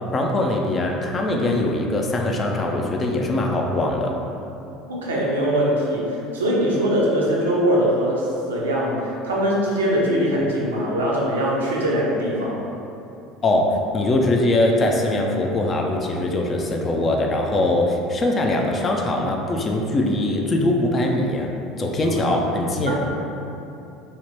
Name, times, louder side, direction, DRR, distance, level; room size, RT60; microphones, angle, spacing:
voice 1, 0.1-4.1 13.4-21.5 21.8-23.0, left 1 dB, 30° left, 1 dB, 0.4 m, -22 dB
voice 2, 4.9-12.6 22.9-23.1, equal, 75° right, -4 dB, 0.5 m, -22 dB
2.8 x 2.2 x 3.2 m, 2.8 s
figure-of-eight pair, 70°, 0 cm